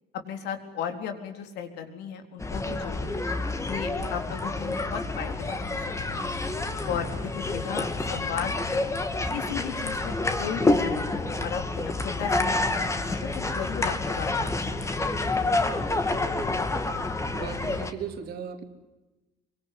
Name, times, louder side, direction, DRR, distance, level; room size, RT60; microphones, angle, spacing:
voice 1, 0.2-3.2 3.6-5.8 6.1-6.4 6.9-8.8 9.3-14.9, left 8 dB, 80° left, 6 dB, 4.0 m, -36 dB
sound 1, 2.4-17.9, left 2 dB, 15° left, 2.5 m, -28 dB
sound 2, 3.8-17.9, left 6 dB, 65° left, 3.3 m, -41 dB
voice 2, 17.3-18.6, right 8 dB, 70° right, 6 dB, 3.3 m, -36 dB
24.0 x 24.0 x 9.4 m, 1.1 s
cardioid pair, 110°, 17 cm